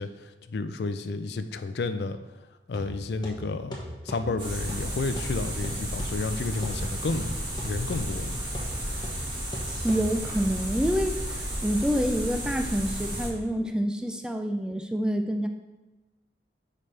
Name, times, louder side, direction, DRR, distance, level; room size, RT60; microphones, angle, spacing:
voice 1, 0.0-2.2 2.7-3.8 4.0-7.4 7.6-8.4, left 3 dB, 60° left, 10 dB, 0.4 m, -31 dB
sound 1, 2.7-10.5, equal, 25° left, 1.1 m, -40 dB
sound 2, 4.4-13.3, right 1 dB, 25° right, 1.6 m, -33 dB
voice 2, 9.8-15.5, equal, 5° right, 5 dB, 0.3 m, -27 dB
8.5 x 5.1 x 3.3 m, 1.1 s
head